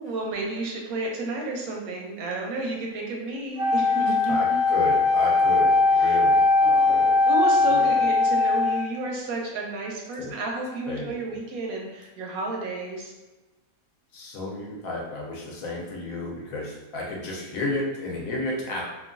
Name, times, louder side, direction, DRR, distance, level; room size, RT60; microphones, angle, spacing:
voice 1, 0.0-4.6 6.0-6.2 6.6-13.1, right 2 dB, 85° right, 0 dB, 1.1 m, -32 dB
Wind instrument woodwind instrument, 3.6-9.0, left 3 dB, 65° right, 0.6 m, -20 dB
voice 2, 4.3-7.2 7.7-7.9 10.2-10.3 10.9-11.1 14.1-18.8, left 2 dB, 70° left, -2 dB, 1.1 m, -32 dB
3.0 x 2.3 x 2.4 m, 1.1 s
omnidirectional pair, 1.5 m